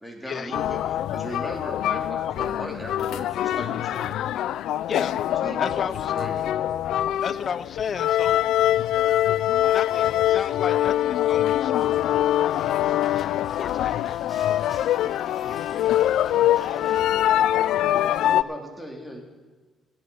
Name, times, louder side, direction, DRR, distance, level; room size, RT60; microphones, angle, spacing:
voice 1, 0.0-4.2 5.4-6.5 18.2-19.2, equal, ahead, 1 dB, 3.3 m, -37 dB
sound 1, 0.5-18.4, left 12 dB, 80° left, 0.3 m, -24 dB
voice 2, 5.6-6.1 7.2-8.6 9.6-12.3 13.1-14.2, left 6 dB, 50° left, 16 dB, 0.7 m, -33 dB
sound 2, 11.7-17.0, left 2 dB, 20° left, 3.0 m, -49 dB
voice 3, 14.9-16.6 16.9-18.2, right 4 dB, 80° right, 1 dB, 2.9 m, -55 dB
16.0 x 11.5 x 5.6 m, 1.3 s
cardioid pair, 90°, 0 cm